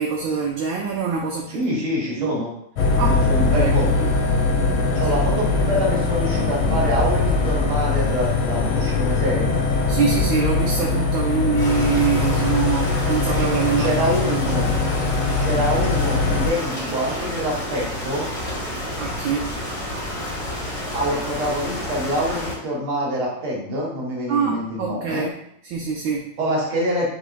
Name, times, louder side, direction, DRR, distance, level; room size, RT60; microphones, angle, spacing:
voice 1, 0.0-1.6 2.2-2.3 3.0-3.7 4.0-4.1 9.9-14.0 14.3-14.4 19.0-19.5 24.3-25.3 25.6-26.3, right 6 dB, 75° right, 0 dB, 1.3 m, -24 dB
voice 2, 1.5-2.5 3.1-3.9 4.9-9.5 13.8-14.7 15.4-18.3 20.9-25.3 26.4-27.1, equal, 90° right, -4 dB, 2.2 m, -25 dB
sound 1, 2.8-16.5, left 3 dB, 90° left, 1.6 m, -21 dB
sound 2, 11.6-22.5, left 1 dB, 35° left, 1.8 m, -30 dB
6.4 x 3.0 x 2.5 m, 0.73 s
omnidirectional pair, 2.3 m